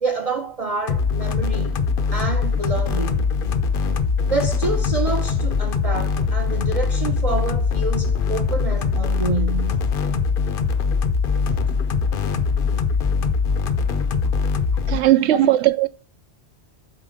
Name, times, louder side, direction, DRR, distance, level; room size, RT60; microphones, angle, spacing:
voice 1, 0.0-1.8 2.1-3.3 4.3-9.9 15.2-15.5, right 4 dB, 40° right, 0.6 m, -27 dB
sound 1, 0.9-15.0, left 5 dB, 60° left, 0.8 m, -22 dB
voice 2, 14.9-15.9, right 14 dB, 75° right, 0.9 m, -17 dB
7.5 x 4.3 x 5.1 m
omnidirectional pair, 1.2 m